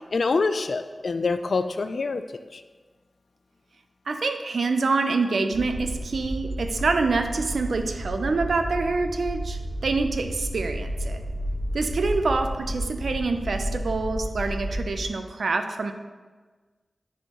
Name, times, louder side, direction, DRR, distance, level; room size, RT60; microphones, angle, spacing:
voice 1, 0.1-2.2 2.5-2.6, left 4 dB, 70° left, 10 dB, 0.3 m, -25 dB
voice 2, 4.1-11.2 11.7-15.9, right 3 dB, 75° right, 7 dB, 0.5 m, -26 dB
sound 1, 5.5-15.1, right 1 dB, 45° right, 1.2 m, -32 dB
9.7 x 4.4 x 2.9 m, 1.4 s
wide cardioid pair, 80°, 0 cm